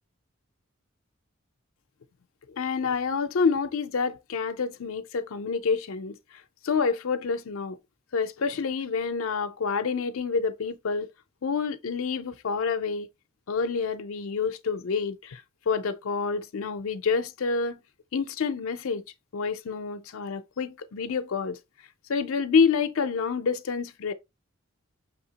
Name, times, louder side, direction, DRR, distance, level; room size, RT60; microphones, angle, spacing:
voice 1, 2.5-6.2 6.6-7.8 8.1-11.1 11.4-13.1 13.5-17.8 18.1-19.0 19.3-21.6 22.1-24.1, left 5 dB, 75° left, 0.5 m, -28 dB
6.0 x 2.8 x 2.8 m
head